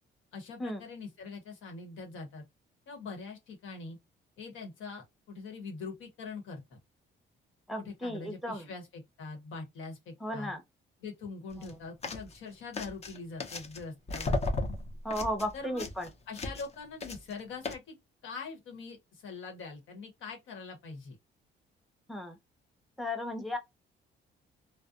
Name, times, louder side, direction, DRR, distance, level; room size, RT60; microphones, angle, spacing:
voice 1, 0.3-2.4 2.9-4.0 4.4-6.8 7.8-10.5 11.0-14.4 15.5-15.9 16.3-17.9 18.2-21.2, left 4 dB, 80° left, 1.2 m, -43 dB
voice 2, 7.7-8.7 10.2-10.6 15.0-16.1 22.1-22.4 23.0-23.6, left 1 dB, ahead, 0.8 m, -35 dB
sound 1, 11.5-11.7 12.0-12.4 12.7-13.8 14.1-16.7 17.0-17.3 17.6-17.7, left 2 dB, 30° left, 0.6 m, -35 dB
2.5 x 2.2 x 2.4 m
cardioid pair, 90°, 20 cm